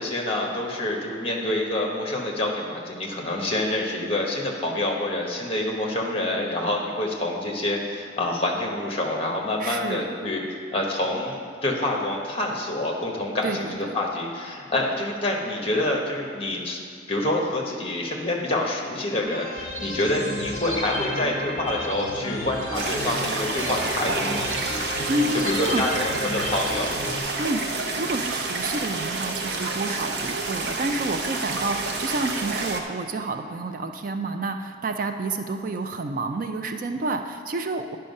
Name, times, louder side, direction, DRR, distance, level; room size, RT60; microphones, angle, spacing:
voice 1, 0.0-10.4 10.7-16.8 17.1-24.5 25.3-26.9, left 1 dB, 30° left, 0 dB, 1.2 m, -27 dB
voice 2, 9.6-10.1 13.4-14.0 25.1-25.9 27.4-38.0, right 2 dB, 45° right, 7 dB, 0.4 m, -29 dB
sound 1, 19.2-27.2, left 1 dB, 10° right, 1.8 m, -33 dB
sound 2, 22.7-32.8, right 3 dB, 60° right, 0.8 m, -29 dB
10.0 x 5.5 x 5.4 m, 2.2 s
head